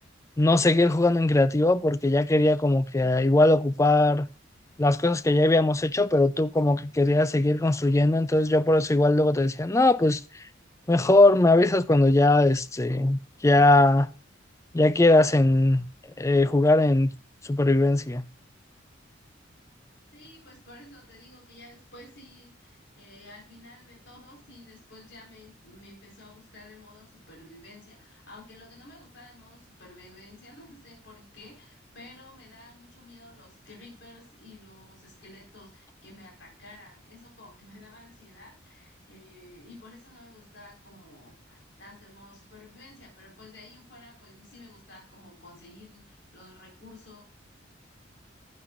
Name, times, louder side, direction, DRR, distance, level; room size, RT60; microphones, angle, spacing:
voice 1, 0.4-4.3 4.8-10.2 10.9-14.1 14.7-15.9 16.2-17.1 17.4-18.3, left 2 dB, 15° left, 0.4 m, -20 dB
voice 2, 20.1-47.2, left 2 dB, 60° left, 4.2 m, -51 dB
11.5 x 9.6 x 2.4 m
head